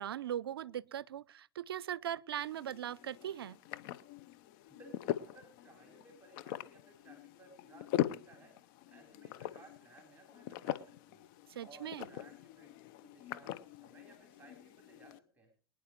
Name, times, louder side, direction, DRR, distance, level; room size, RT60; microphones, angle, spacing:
voice 1, 0.0-3.6 11.5-12.1, right 10 dB, 80° right, 0.5 m, -40 dB
sound 1, 2.3-15.2, left 13 dB, 55° left, 0.8 m, -42 dB
voice 2, 4.7-8.5 8.8-11.2 11.6-15.5, right 2 dB, 15° right, 3.9 m, -59 dB
23.5 x 10.0 x 3.1 m
hypercardioid pair, 95°, 13 cm